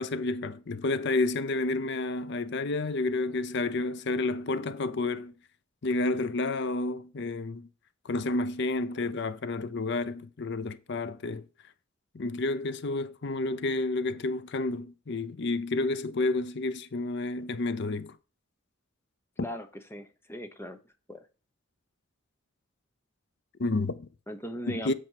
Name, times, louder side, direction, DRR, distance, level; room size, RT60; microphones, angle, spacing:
voice 1, 0.0-5.3 5.8-7.7 8.0-11.4 12.1-18.2 23.6-24.1 24.8-24.9, left 2 dB, 55° left, 0.6 m, -30 dB
voice 2, 19.4-20.8 21.1-21.3 24.3-24.9, equal, 10° left, 0.8 m, -39 dB
8.1 x 4.6 x 4.6 m
head